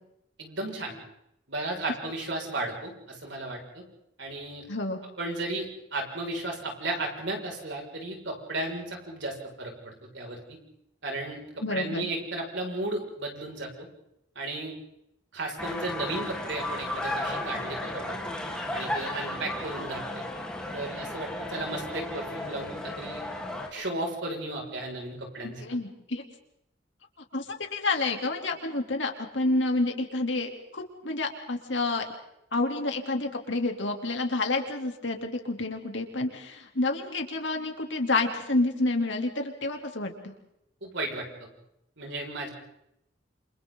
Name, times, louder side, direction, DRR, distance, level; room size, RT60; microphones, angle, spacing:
voice 1, 0.4-1.0 1.5-3.8 4.2-4.7 5.2-10.6 11.0-13.9 14.3-14.8 15.3-18.3 18.7-20.2 20.7-23.3 23.7-25.6 40.8-41.3 42.0-42.5, right 2 dB, 75° right, 0 dB, 6.1 m, -34 dB
voice 2, 4.7-5.0 11.6-12.1 25.4-26.2 27.3-27.4 27.7-32.0 32.5-40.3, left 2 dB, 85° left, 3 dB, 3.3 m, -29 dB
sound 1, 15.6-23.7, left 1 dB, 5° left, 3.6 m, -34 dB
28.5 x 27.5 x 4.0 m, 0.82 s
head